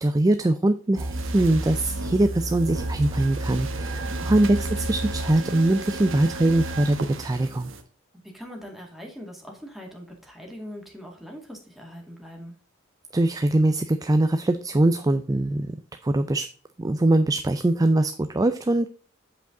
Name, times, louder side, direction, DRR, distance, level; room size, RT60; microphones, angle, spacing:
voice 1, 0.0-7.7 13.1-15.7 16.0-16.5 16.8-18.9, right 1 dB, 20° right, 9 dB, 0.4 m, -22 dB
sound 1, 1.0-7.8, right 2 dB, 65° right, 1.2 m, -31 dB
voice 2, 4.1-4.4 8.3-12.5, equal, ahead, 0 dB, 2.0 m, -41 dB
8.1 x 5.0 x 3.8 m, 0.39 s
head